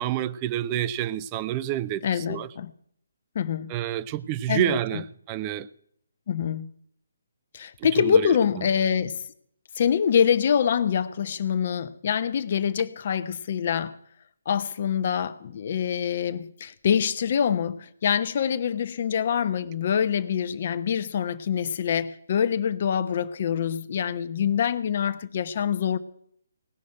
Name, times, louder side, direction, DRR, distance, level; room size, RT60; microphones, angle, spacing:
voice 1, 0.0-2.5 3.7-5.7 7.8-8.7, right 11 dB, 25° right, 0.6 m, -29 dB
voice 2, 2.0-2.7 3.3-3.7 4.5-4.7 6.3-6.7 7.5-9.2 9.8-13.9 14.5-26.0, left 8 dB, 45° left, 1.0 m, -25 dB
18.0 x 6.4 x 9.8 m
figure-of-eight pair, 140°, 0 cm